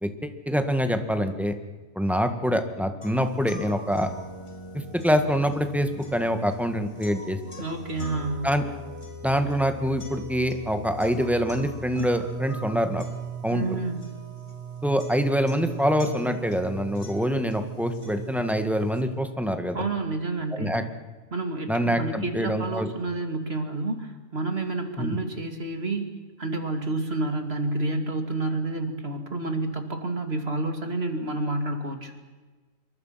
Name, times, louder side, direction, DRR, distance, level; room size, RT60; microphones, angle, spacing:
voice 1, 0.0-1.5 2.0-4.1 4.7-7.4 8.4-8.6 9.2-13.0 13.4-13.6 14.8-19.8 20.5-20.8 21.7-22.9 25.0-25.2, equal, ahead, 7 dB, 1.8 m, -25 dB
sound 1, 3.0-19.0, right 4 dB, 20° left, 3.4 m, -39 dB
voice 2, 7.6-8.5 13.5-14.1 19.7-20.9 21.3-26.1 26.4-32.1, right 2 dB, 40° right, 5 dB, 2.8 m, -29 dB
27.5 x 23.0 x 6.0 m, 1.3 s
omnidirectional pair, 1.6 m